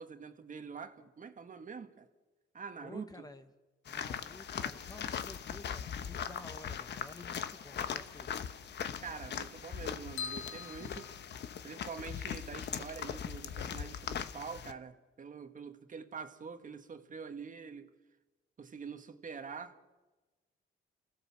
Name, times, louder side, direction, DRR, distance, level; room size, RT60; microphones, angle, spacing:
voice 1, 0.0-2.1 2.5-3.3 9.0-11.1 11.6-17.9 18.6-19.8, right 5 dB, 40° right, 1.7 m, -45 dB
voice 2, 2.8-3.5 3.9-8.4, left 2 dB, 20° left, 1.1 m, -52 dB
sound 1, 3.9-14.7, left 8 dB, 60° left, 1.1 m, -40 dB
sound 2, 10.2-11.9, left 6 dB, 90° left, 1.3 m, -44 dB
29.0 x 16.0 x 7.2 m
cardioid pair, 90°, 20 cm